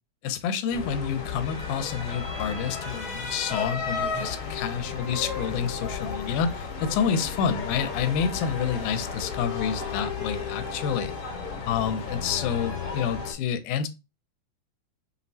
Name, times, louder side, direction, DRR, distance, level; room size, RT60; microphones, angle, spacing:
voice 1, 0.2-11.3 11.6-13.9, left 7 dB, 85° left, 2.0 m, -28 dB
sound 1, 0.7-13.3, left 5 dB, 60° left, 1.7 m, -33 dB
5.6 x 2.0 x 2.6 m
omnidirectional pair, 3.5 m